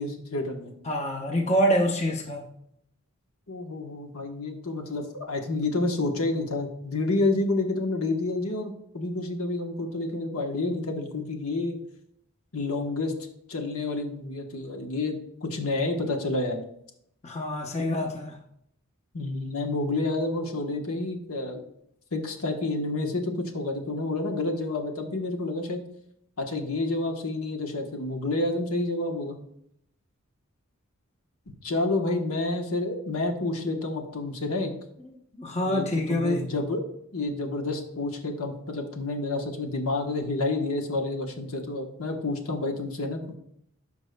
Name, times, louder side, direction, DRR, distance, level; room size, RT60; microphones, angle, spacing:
voice 1, 0.0-0.7 3.5-11.8 12.5-13.2 13.5-16.6 19.1-21.6 22.1-25.8 26.4-29.4 31.6-34.7 35.6-36.8 37.1-43.4, left 2 dB, 80° left, 1.1 m, -29 dB
voice 2, 0.9-2.5 17.2-18.4 35.4-36.4, equal, 30° left, 0.8 m, -26 dB
13.0 x 5.3 x 2.2 m
head